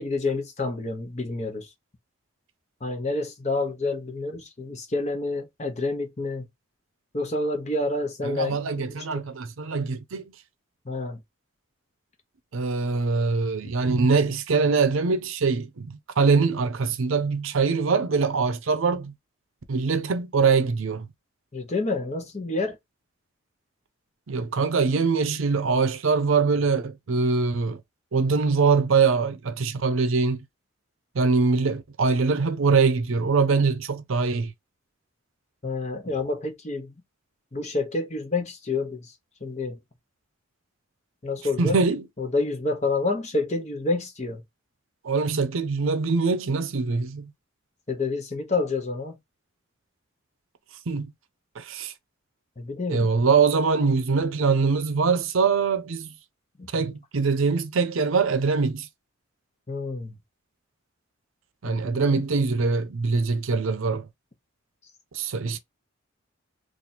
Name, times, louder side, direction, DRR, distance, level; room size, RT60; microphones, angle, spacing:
voice 1, 0.0-1.7 2.8-6.5 7.1-8.6 8.9-9.2 10.8-11.2 13.6-13.7 21.5-22.8 35.6-36.9 37.5-39.1 39.4-39.8 41.2-41.8 42.2-44.4 47.9-49.2 52.6-53.1 56.6-56.7 59.7-60.2 61.6-62.2, left 3 dB, 35° left, 0.8 m, -28 dB
voice 2, 8.2-10.3 12.5-19.1 19.7-21.1 24.3-27.8 28.1-30.4 31.1-34.5 41.6-42.1 45.0-47.3 50.9-51.1 51.6-51.9 52.9-56.1 56.7-58.9 61.6-64.1 65.1-65.6, right 4 dB, 75° right, 0.5 m, -23 dB
2.9 x 2.5 x 4.1 m
head